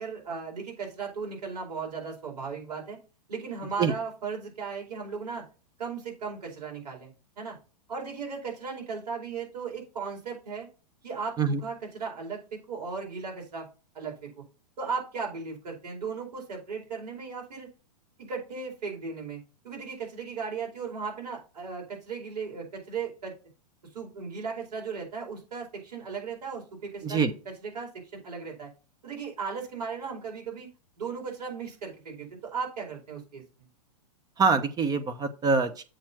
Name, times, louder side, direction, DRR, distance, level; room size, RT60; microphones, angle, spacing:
voice 1, 0.0-3.0 3.3-5.5 5.8-7.1 7.4-7.5 7.9-10.7 11.0-13.7 13.9-14.4 14.8-17.7 18.2-19.4 19.6-23.3 23.9-28.7 29.0-30.7 31.0-33.7, right 5 dB, 75° right, -1 dB, 4.9 m, -36 dB
voice 2, 34.4-35.8, right 5 dB, 20° right, 10 dB, 0.8 m, -25 dB
7.8 x 4.4 x 5.9 m, 0.33 s
hypercardioid pair, 125°, 21 cm